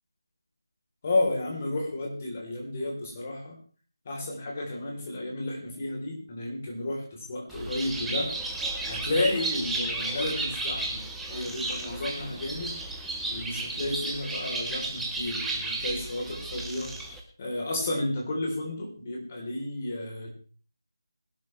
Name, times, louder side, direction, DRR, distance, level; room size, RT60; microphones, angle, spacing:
voice 1, 1.0-3.6 4.1-8.3 8.9-11.0 11.3-12.8 13.3-16.9 17.4-20.3, left 2 dB, 25° left, 0 dB, 3.5 m, -32 dB
Bird, 7.5-17.2, right 2 dB, ahead, 0.8 m, -33 dB
20.0 x 11.5 x 3.2 m, 0.41 s
figure-of-eight pair, 170°, 2 cm